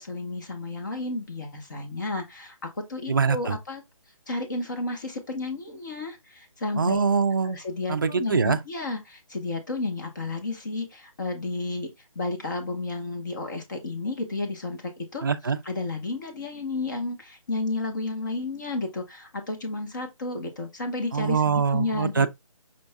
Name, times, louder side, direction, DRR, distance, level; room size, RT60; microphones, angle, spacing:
voice 1, 0.0-3.8 4.3-7.0 7.4-15.2 15.6-22.3, left 2 dB, 35° left, 1.2 m, -32 dB
voice 2, 3.1-3.6 6.8-7.6 7.9-8.6 15.2-15.6 21.1-22.3, right 5 dB, 40° right, 0.4 m, -23 dB
5.4 x 2.6 x 3.4 m
hypercardioid pair, 175°, 18 cm